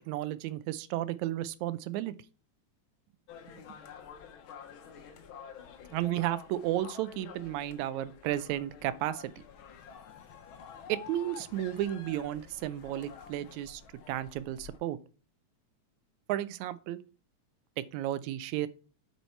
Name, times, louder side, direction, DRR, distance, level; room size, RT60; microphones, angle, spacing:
voice 1, 0.1-2.1 5.9-9.4 10.9-13.8 14.1-15.0 16.3-17.0 17.9-18.7, right 13 dB, 80° right, 1.8 m, -33 dB
sound 1, 3.3-14.8, left 7 dB, 90° left, 1.1 m, -49 dB
8.2 x 4.5 x 4.4 m
omnidirectional pair, 3.5 m